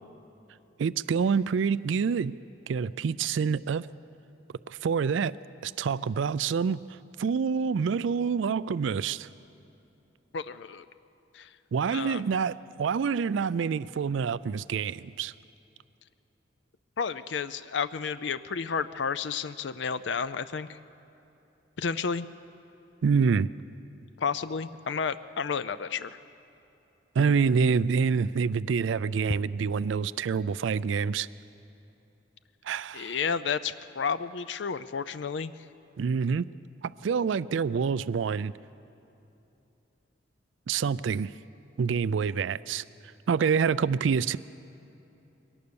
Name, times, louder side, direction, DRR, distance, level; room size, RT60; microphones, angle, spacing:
voice 1, 0.8-2.3 2.7-3.9 4.7-5.3 5.6-6.8 7.2-9.3 11.7-15.3 23.0-23.5 27.2-31.3 32.6-33.1 36.0-36.5 36.8-38.5 40.7-41.3 41.8-42.8 43.3-44.4, right 6 dB, 80° right, 18 dB, 0.4 m, -27 dB
voice 2, 10.3-10.9 11.3-11.5 11.9-12.2 17.0-20.8 21.8-22.3 24.2-26.2 32.9-35.5, left 6 dB, 70° left, 14 dB, 0.5 m, -31 dB
22.5 x 18.0 x 7.0 m, 2.9 s
head